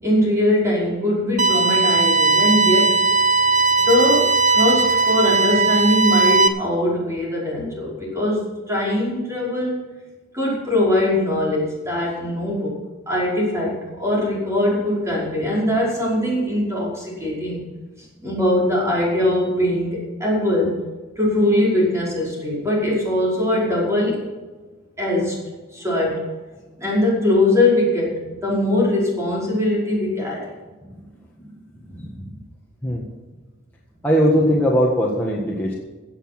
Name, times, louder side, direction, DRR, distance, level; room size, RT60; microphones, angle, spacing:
voice 1, 0.0-3.0 3.9-9.8 10.3-12.7 13.1-17.6 18.2-20.8 21.2-24.2 25.0-25.4 25.7-26.3 26.8-30.5, left 1 dB, 15° right, -5 dB, 5.3 m, -21 dB
sound 1, 1.4-6.5, right 4 dB, 40° right, 0.9 m, -17 dB
voice 2, 34.0-35.7, equal, 10° left, -4 dB, 1.6 m, -19 dB
16.0 x 8.4 x 6.0 m, 1.3 s
head